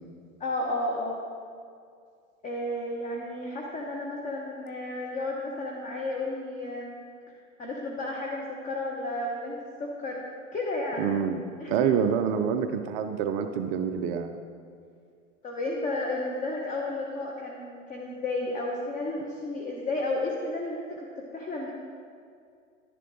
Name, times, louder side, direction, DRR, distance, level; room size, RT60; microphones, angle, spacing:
voice 1, 0.4-1.2 2.4-7.0 7.6-10.2 10.5-11.2 11.6-11.7 15.4-21.1 21.3-21.7, left 2 dB, 20° left, -2 dB, 1.2 m, -32 dB
voice 2, 11.0-11.4 11.7-14.3, right 7 dB, 20° right, 7 dB, 0.3 m, -27 dB
11.0 x 10.5 x 3.8 m, 2.3 s
figure-of-eight pair, 95°, 39 cm